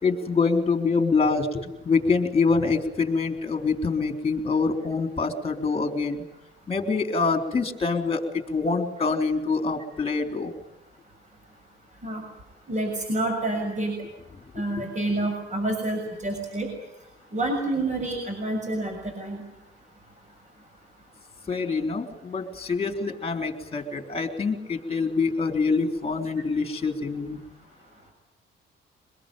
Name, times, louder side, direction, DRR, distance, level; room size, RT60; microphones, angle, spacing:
voice 1, 0.0-6.2 6.7-10.5 14.5-14.6 21.5-27.4, left 4 dB, 30° left, 6 dB, 3.8 m, -25 dB
voice 2, 12.7-14.0 14.5-16.7 17.3-19.4, right 2 dB, 35° right, 3 dB, 6.7 m, -28 dB
24.0 x 21.5 x 9.2 m, 0.90 s
cardioid pair, 90°, 20 cm